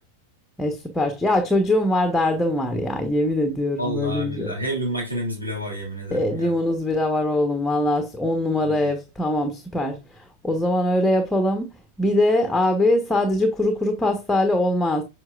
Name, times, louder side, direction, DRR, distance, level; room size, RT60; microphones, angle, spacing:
voice 1, 0.6-4.5 6.1-11.7 12.0-15.0, left 1 dB, 5° left, 1.1 m, -22 dB
voice 2, 3.8-6.5 8.6-8.9, equal, 80° right, 2.9 m, -29 dB
7.8 x 5.8 x 2.5 m
figure-of-eight pair, 90°, 0 cm